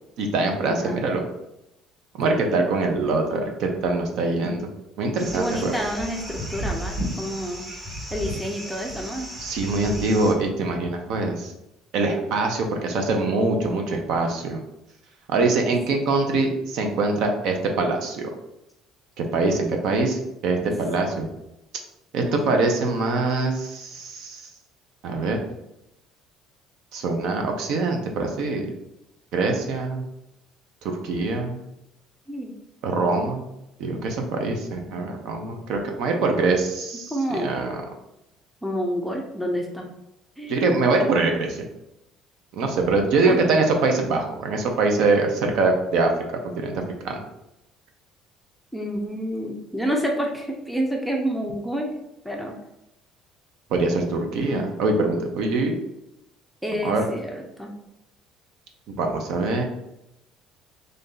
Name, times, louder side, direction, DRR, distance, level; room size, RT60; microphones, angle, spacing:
voice 1, 0.2-1.2 2.2-4.6 5.0-5.8 9.4-11.5 11.9-14.6 15.3-18.3 19.2-21.3 22.1-24.5 25.0-25.4 26.9-28.7 29.3-30.0 30.8-31.6 32.8-33.5 33.8-37.8 40.5-41.7 42.5-46.7 47.0-47.2 53.7-55.8 56.8-57.1 58.9-59.6, right 3 dB, 65° right, 3 dB, 0.7 m, -23 dB
voice 2, 2.2-2.6 5.3-7.6 8.1-9.3 20.6-20.7 22.2-22.6 32.3-32.5 37.1-37.6 38.6-39.9 40.4-40.6 43.3-43.4 48.7-51.9 52.2-52.5 54.4-54.6 56.6-57.7, equal, ahead, 0 dB, 0.5 m, -29 dB
sound 1, 5.2-10.3, equal, 20° right, 0.9 m, -34 dB
3.3 x 2.6 x 3.8 m, 0.87 s
cardioid pair, 140°, 0 cm